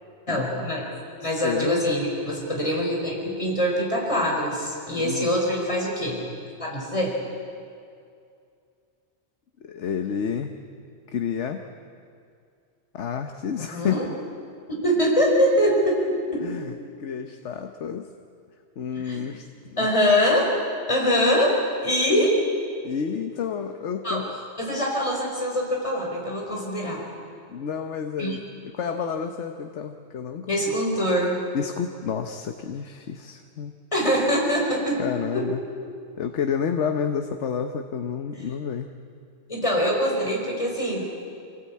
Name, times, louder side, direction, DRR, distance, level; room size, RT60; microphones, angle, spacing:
voice 1, 0.3-0.8 1.2-6.2 6.6-7.1 13.6-14.0 14.7-16.1 16.3-16.4 19.0-19.2 19.8-20.5 20.9-21.5 21.8-22.3 24.0-24.2 24.6-27.0 28.2-28.4 30.5-31.4 33.9-35.0 35.3-35.4 38.3-38.4 39.5-41.0, equal, 30° left, -2 dB, 4.8 m, -23 dB
voice 2, 1.2-1.8 5.0-5.3 9.6-10.6 11.1-11.6 12.9-14.0 16.4-16.7 17.0-18.1 18.8-19.9 22.8-24.4 27.5-30.7 31.5-33.7 35.0-35.6 36.2-38.9, left 7 dB, 90° left, 6 dB, 1.2 m, -30 dB
25.0 x 17.5 x 8.5 m, 2.4 s
omnidirectional pair, 1.2 m